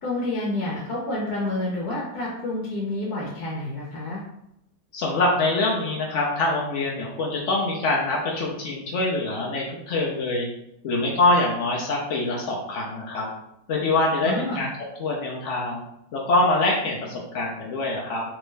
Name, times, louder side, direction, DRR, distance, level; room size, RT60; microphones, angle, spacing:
voice 1, 0.0-4.2 14.2-14.7, left 2 dB, 60° left, -4 dB, 1.2 m, -29 dB
voice 2, 4.9-10.5 10.8-13.3 13.7-14.7 15.0-15.8 16.1-18.2, left 2 dB, 90° left, -2 dB, 0.6 m, -24 dB
3.5 x 3.0 x 3.2 m, 0.81 s
omnidirectional pair, 2.1 m